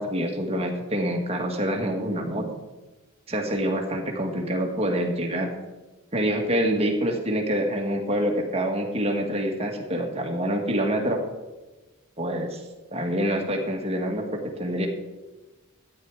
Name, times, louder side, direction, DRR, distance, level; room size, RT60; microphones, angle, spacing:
voice 1, 0.0-2.5 3.3-5.5 6.1-11.2 12.2-12.6 12.9-14.9, equal, 30° right, 2 dB, 1.8 m, -26 dB
13.5 x 9.4 x 4.9 m, 1.2 s
head